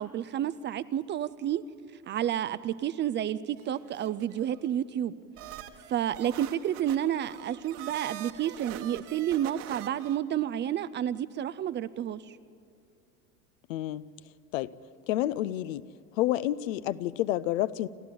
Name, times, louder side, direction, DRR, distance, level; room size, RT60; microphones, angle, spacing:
voice 1, 0.0-1.6 2.1-5.1 5.9-12.4, right 11 dB, 25° right, 14 dB, 0.5 m, -30 dB
sound 1, 3.6-4.6 5.4-10.2, right 11 dB, 55° right, 1.6 m, -44 dB
voice 2, 13.7-14.0 14.5-14.7 15.1-15.8 16.2-17.9, left 14 dB, 65° left, 16 dB, 0.8 m, -29 dB
29.0 x 13.5 x 8.5 m, 2.5 s
hypercardioid pair, 85°, 44 cm